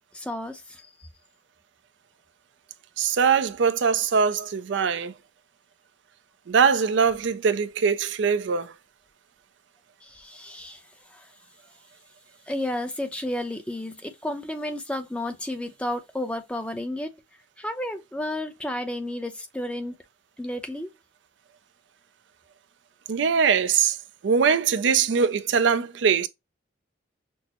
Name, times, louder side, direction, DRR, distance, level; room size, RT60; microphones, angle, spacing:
voice 1, 0.1-0.9 10.0-11.3 12.5-17.1 17.6-19.9 20.4-20.9, left 1 dB, 5° left, 0.6 m, -32 dB
voice 2, 3.0-5.1 6.5-8.7 23.1-24.0 24.2-26.3, right 6 dB, 75° right, 0.4 m, -22 dB
6.1 x 2.0 x 2.9 m
head